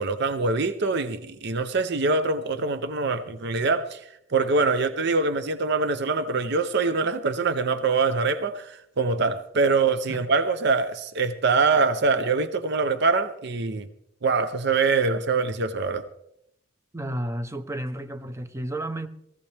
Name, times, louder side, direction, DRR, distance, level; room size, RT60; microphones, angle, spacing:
voice 1, 0.0-13.9 14.2-16.0, right 4 dB, 55° right, 0.7 m, -24 dB
voice 2, 16.9-19.1, right 1 dB, 15° right, 0.7 m, -32 dB
19.0 x 15.0 x 3.4 m
head